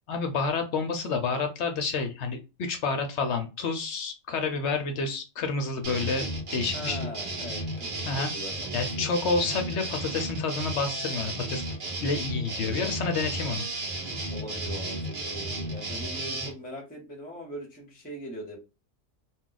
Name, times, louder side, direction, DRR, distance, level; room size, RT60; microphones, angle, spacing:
voice 1, 0.1-7.1 8.0-8.3 8.7-11.6 12.0-13.6, left 4 dB, 65° left, 6 dB, 0.8 m, -29 dB
sound 1, 5.8-16.5, right 1 dB, 50° right, 0.7 m, -33 dB
voice 2, 6.7-9.2 12.6-12.9 14.3-18.6, equal, 10° left, 1 dB, 0.7 m, -41 dB
2.3 x 2.3 x 3.8 m, 0.29 s
omnidirectional pair, 1.4 m